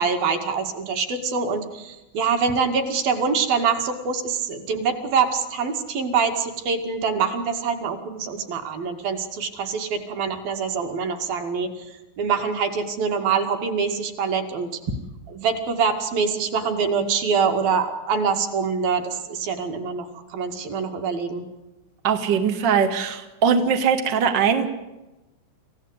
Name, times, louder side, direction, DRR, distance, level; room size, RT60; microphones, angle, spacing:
voice 1, 0.0-11.9 12.2-14.7 15.3-21.4, right 5 dB, 55° right, 5 dB, 3.5 m, -25 dB
voice 2, 22.0-24.7, right 6 dB, 75° right, 5 dB, 1.0 m, -21 dB
27.5 x 16.5 x 8.2 m, 1.0 s
omnidirectional pair, 5.9 m